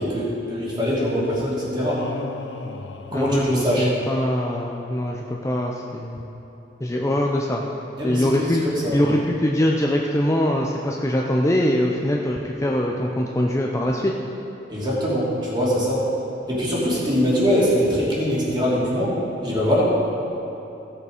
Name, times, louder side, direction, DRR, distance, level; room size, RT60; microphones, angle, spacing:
voice 1, 0.0-2.1 3.1-3.9 8.0-9.0 14.7-16.1 16.5-19.2 19.4-19.8, equal, 25° right, -7 dB, 2.7 m, -22 dB
sound 1, 1.8-4.3, left 3 dB, 80° left, 0.7 m, -37 dB
voice 2, 3.1-6.3 6.8-7.6 8.0-8.6 8.9-14.1, left 1 dB, 15° left, -1 dB, 0.5 m, -23 dB
15.5 x 6.7 x 5.0 m, 3.0 s
head